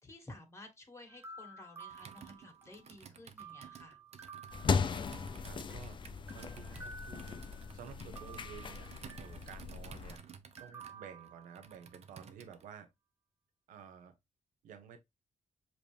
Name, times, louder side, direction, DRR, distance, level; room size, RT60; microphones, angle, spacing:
voice 1, 0.0-4.0, left 1 dB, 20° left, 1.9 m, -53 dB
sound 1, 1.1-3.0 3.4-5.9 6.3-7.8 8.2-9.5 10.6-12.0, right 4 dB, 15° right, 0.9 m, -53 dB
Computer keyboard, 1.9-12.7, right 7 dB, 55° right, 0.7 m, -55 dB
sound 2, 4.5-10.2, left 5 dB, 35° left, 0.5 m, -38 dB
voice 2, 5.5-6.0 6.3-7.5 7.7-10.2 10.6-12.9 13.7-14.2 14.6-15.0, right 7 dB, 85° right, 0.8 m, -52 dB
5.2 x 3.1 x 3.2 m
cardioid pair, 75°, 13 cm